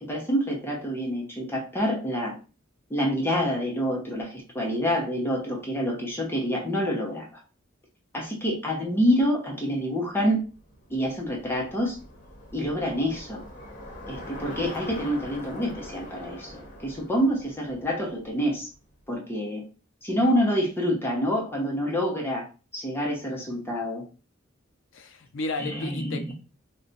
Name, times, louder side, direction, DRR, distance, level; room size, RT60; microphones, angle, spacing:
voice 1, 0.0-2.3 2.9-7.3 8.1-10.4 10.9-12.0 12.5-13.4 14.1-18.7 19.1-19.6 20.0-22.5 22.7-24.0 25.6-26.3, equal, 10° left, -1 dB, 0.7 m, -27 dB
Bicycle, 10.4-18.7, left 1 dB, 40° left, 0.9 m, -43 dB
voice 2, 24.9-26.3, left 2 dB, 65° left, 7 dB, 0.5 m, -33 dB
2.4 x 2.2 x 3.9 m, 0.34 s
head